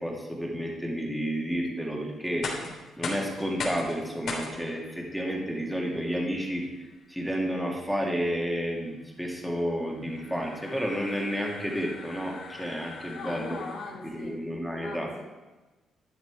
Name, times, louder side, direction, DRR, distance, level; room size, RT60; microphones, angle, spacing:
voice 1, 0.0-2.5 3.0-6.7 7.1-13.6 14.0-15.1, equal, ahead, -1 dB, 2.5 m, -31 dB
sound 1, 2.2-14.1, left 3 dB, 65° left, 3.3 m, -41 dB
voice 2, 13.1-14.3 14.8-15.2, left 4 dB, 85° left, -3 dB, 2.8 m, -39 dB
12.5 x 10.0 x 4.9 m, 1.2 s
cardioid pair, 90°, 0 cm